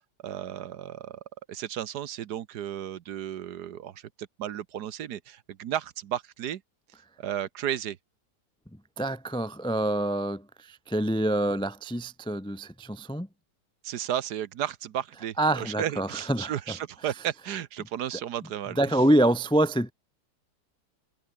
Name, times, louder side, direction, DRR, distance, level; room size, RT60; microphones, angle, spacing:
voice 1, 0.2-1.2 1.5-6.6 7.2-8.0 13.8-18.8, right 10 dB, 70° right, 1.4 m, -33 dB
voice 2, 9.0-13.3 15.4-16.8 18.8-19.9, right 1 dB, 10° left, 0.3 m, -26 dB
omnidirectional pair, 1.9 m